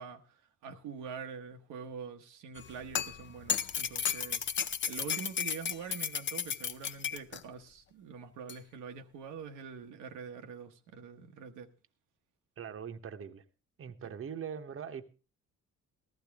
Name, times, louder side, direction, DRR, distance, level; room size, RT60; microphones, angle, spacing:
voice 1, 0.0-11.7 14.0-14.1, right 6 dB, 90° right, 1.0 m, -45 dB
sound 1, 2.6-7.4 8.5-8.6, left 7 dB, 40° left, 0.6 m, -34 dB
voice 2, 12.6-13.4 13.8-15.0, right 7 dB, 45° right, 1.0 m, -41 dB
14.5 x 12.0 x 3.5 m
cardioid pair, 90°, 30 cm